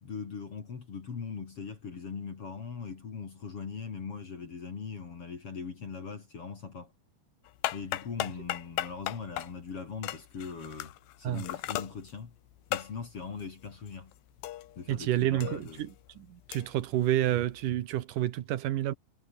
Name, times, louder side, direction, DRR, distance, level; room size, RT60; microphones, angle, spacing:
voice 1, 0.0-6.9 7.7-10.9 11.2-12.3 12.7-14.1 14.8-15.9, left 5 dB, 40° left, 3.0 m, -40 dB
sound 1, 7.5-15.0 15.2-17.7, left 15 dB, 80° left, 3.3 m, -38 dB
voice 2, 14.9-18.9, right 13 dB, 65° right, 2.2 m, -29 dB
omnidirectional pair, 4.9 m